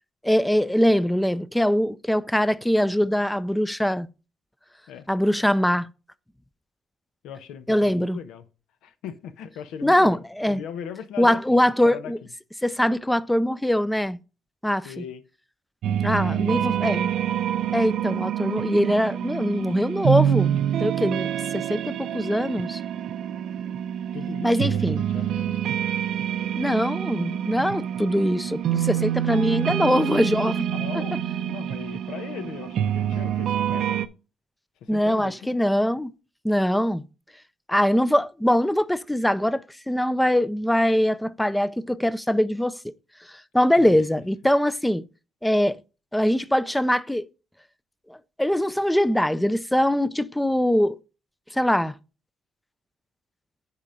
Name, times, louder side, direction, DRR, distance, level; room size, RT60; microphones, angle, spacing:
voice 1, 0.2-4.1 5.1-5.9 7.7-8.2 9.8-10.6 11.2-12.2 12.6-14.2 14.6-15.0 16.0-17.1 17.7-21.3 21.5-22.8 24.4-25.0 26.5-30.7 34.9-36.1 36.4-37.0 37.7-42.9 43.5-45.0 45.4-45.8 46.1-47.3 48.4-51.0 51.5-52.0, equal, 5° left, 0.4 m, -22 dB
voice 2, 7.2-8.5 8.8-12.1 14.8-15.2 16.2-16.7 24.1-25.6 29.7-30.2 30.7-34.0 34.8-35.6 43.8-44.0, left 8 dB, 85° left, 0.8 m, -39 dB
sound 1, 15.8-34.1, right 10 dB, 70° right, 0.6 m, -26 dB
9.9 x 3.8 x 5.1 m
cardioid pair, 85°, 0 cm